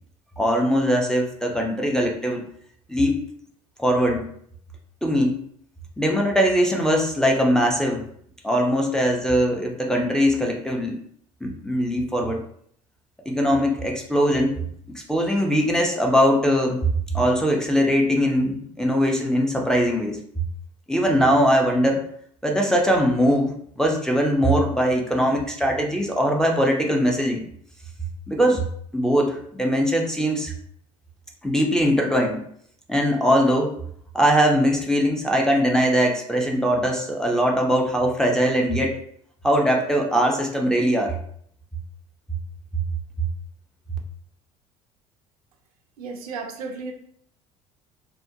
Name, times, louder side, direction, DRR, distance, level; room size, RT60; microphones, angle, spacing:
voice 1, 0.4-2.4 2.9-3.2 3.8-4.3 5.0-5.4 6.0-8.0 8.4-11.0 11.4-12.4 13.3-14.6 15.1-20.2 20.9-22.0 22.4-27.4 28.3-28.6 28.9-30.5 31.4-32.4 32.9-33.8 34.1-39.0 39.4-41.2, equal, 5° left, -1 dB, 0.4 m, -21 dB
voice 2, 46.0-46.9, right 4 dB, 75° right, 2 dB, 0.5 m, -33 dB
2.5 x 2.1 x 2.6 m, 0.65 s
figure-of-eight pair, 60°, 19 cm